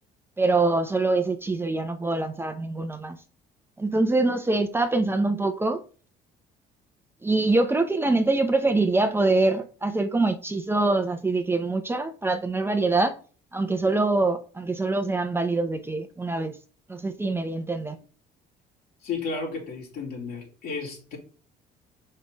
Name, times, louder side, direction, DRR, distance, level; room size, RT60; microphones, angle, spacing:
voice 1, 0.4-3.2 3.8-5.8 7.2-13.2 13.5-16.6 16.9-18.0, right 2 dB, 15° right, 0.8 m, -24 dB
voice 2, 19.0-21.2, left 4 dB, 65° left, 3.5 m, -33 dB
5.8 x 5.5 x 3.5 m
cardioid pair, 110°, 17 cm